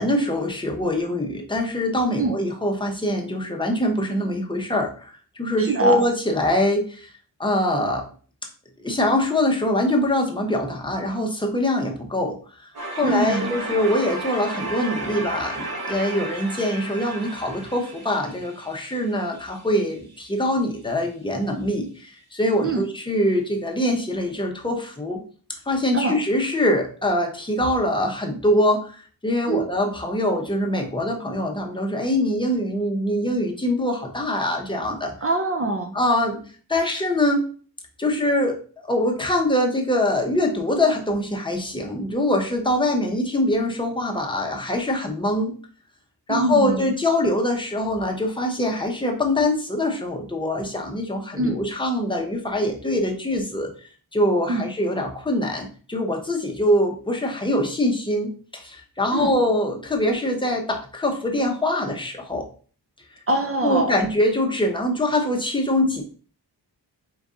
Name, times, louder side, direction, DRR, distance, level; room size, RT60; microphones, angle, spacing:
voice 1, 0.0-5.1 5.4-7.1 7.4-8.0 8.8-12.4 12.6-25.2 25.7-35.1 35.9-36.4 36.7-37.5 38.0-38.6 38.9-45.5 46.3-53.7 54.1-62.5 63.6-66.0, left 1 dB, 10° left, 2 dB, 0.7 m, -23 dB
voice 2, 5.6-6.0 13.0-13.5 22.6-22.8 25.9-26.2 29.5-29.7 35.2-35.9 46.3-46.9 51.4-51.6 54.5-54.7 59.1-59.3 63.3-64.0, right 2 dB, 35° right, 5 dB, 0.4 m, -23 dB
sound 1, 12.7-19.6, right 2 dB, 65° right, 1.2 m, -33 dB
4.6 x 2.6 x 3.6 m, 0.41 s
wide cardioid pair, 150°, 39 cm